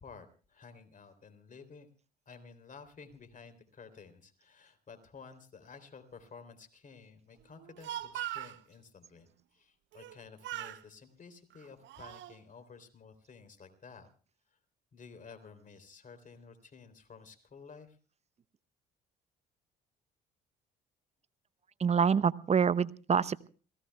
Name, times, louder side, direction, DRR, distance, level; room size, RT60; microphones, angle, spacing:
voice 1, 0.0-1.9 2.2-14.1 14.5-14.6 14.9-18.0, left 5 dB, 40° left, 9 dB, 3.4 m, -53 dB
Speech, 7.6-8.6 9.9-10.2 10.4-10.8 11.5-12.3, right 13 dB, 65° right, 0.9 m, -40 dB
voice 2, 21.8-23.5, right 6 dB, 30° right, 18 dB, 0.8 m, -27 dB
28.5 x 17.5 x 2.3 m, 0.37 s
hypercardioid pair, 55°, 21 cm